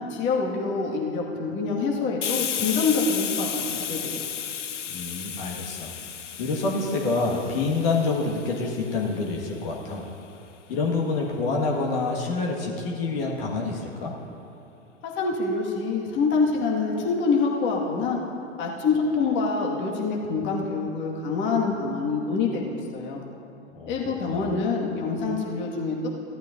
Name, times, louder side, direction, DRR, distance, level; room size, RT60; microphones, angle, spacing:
voice 1, 0.0-4.3 15.0-18.2 18.6-23.2 23.9-26.1, left 4 dB, 30° left, -2 dB, 1.8 m, -26 dB
Hiss, 2.2-9.6, left 8 dB, 85° left, 0.6 m, -33 dB
voice 2, 4.9-5.9 6.4-10.1 10.7-14.1 23.8-24.5, left 3 dB, 50° left, -2 dB, 1.7 m, -27 dB
17.0 x 12.0 x 2.6 m, 2.7 s
figure-of-eight pair, 95°, 36 cm